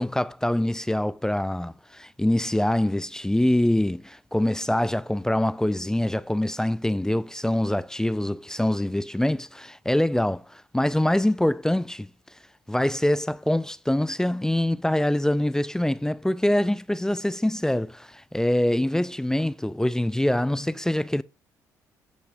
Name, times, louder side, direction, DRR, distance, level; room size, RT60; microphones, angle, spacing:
voice 1, 0.0-12.1 12.7-21.2, left 1 dB, 5° left, 0.5 m, -24 dB
17.0 x 8.3 x 2.5 m
figure-of-eight pair, 45°, 9 cm